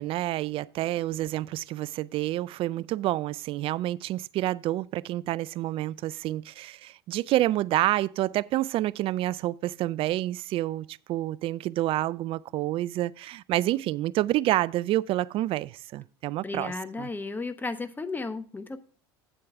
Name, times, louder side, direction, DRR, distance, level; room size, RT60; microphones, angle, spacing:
voice 1, 0.0-17.1, right 15 dB, 45° right, 0.4 m, -28 dB
voice 2, 16.4-18.8, left 3 dB, 15° left, 0.9 m, -34 dB
9.1 x 7.7 x 3.5 m
hypercardioid pair, 80°, 13 cm